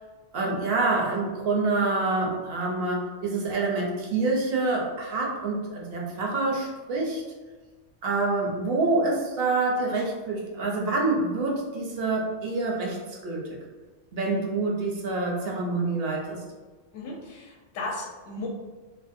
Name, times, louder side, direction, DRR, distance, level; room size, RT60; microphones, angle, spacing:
voice 1, 0.3-7.2 8.0-13.4 14.1-16.4, right 3 dB, 65° right, -1 dB, 0.7 m, -27 dB
voice 2, 16.9-18.5, left 2 dB, 65° left, -1 dB, 0.8 m, -35 dB
2.6 x 2.0 x 2.4 m, 1.3 s
omnidirectional pair, 1.2 m